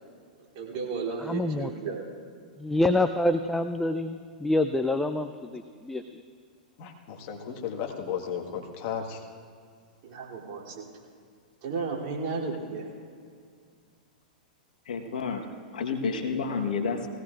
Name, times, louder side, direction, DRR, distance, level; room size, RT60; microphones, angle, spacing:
voice 1, 0.5-2.0 10.0-10.8 11.6-12.9, right 4 dB, 45° right, -3 dB, 3.2 m, -33 dB
voice 2, 1.2-1.7 2.6-6.2, left 1 dB, 5° left, 8 dB, 0.4 m, -27 dB
voice 3, 6.8-9.2, left 8 dB, 45° left, 2 dB, 1.7 m, -34 dB
voice 4, 14.9-15.4 15.7-17.1, left 5 dB, 65° left, 5 dB, 1.3 m, -30 dB
19.5 x 17.0 x 2.5 m, 2.2 s
figure-of-eight pair, 100°, 5 cm